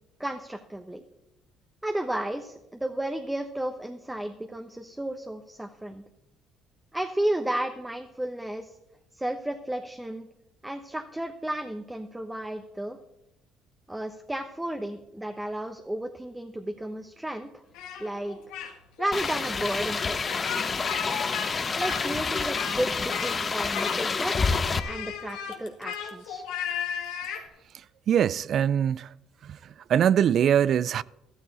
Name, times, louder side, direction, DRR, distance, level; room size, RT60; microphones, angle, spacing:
voice 1, 0.2-1.0 1.8-6.0 6.9-8.7 9.1-10.3 10.6-13.0 13.9-17.5 18.0-18.4 19.0-20.5 20.9-21.1 21.8-24.4 24.8-26.4, right 1 dB, 10° right, 1.1 m, -33 dB
Speech, 17.7-18.7 19.0-19.4 20.2-21.5 21.8-22.8 23.1-23.4 23.7-24.3 24.7-27.5, left 8 dB, 80° left, 1.9 m, -35 dB
sound 1, 19.1-24.8, left 4 dB, 35° left, 1.0 m, -28 dB
voice 2, 28.1-29.1 29.4-29.6 29.9-31.0, right 9 dB, 55° right, 0.3 m, -22 dB
13.5 x 13.0 x 4.2 m
supercardioid pair, 70°, 0 cm